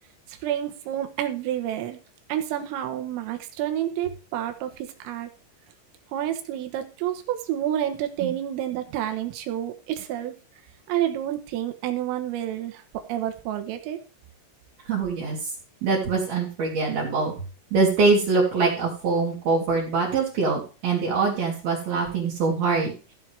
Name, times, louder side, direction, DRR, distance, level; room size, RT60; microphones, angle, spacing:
voice 1, 0.3-2.0 2.3-5.3 6.1-10.3 10.9-14.0, right 11 dB, 85° right, 7 dB, 3.9 m, -29 dB
voice 2, 14.9-15.5 15.8-17.3 17.7-22.9, right 4 dB, 55° right, -1 dB, 4.0 m, -23 dB
15.5 x 7.7 x 3.6 m, 0.34 s
omnidirectional pair, 5.9 m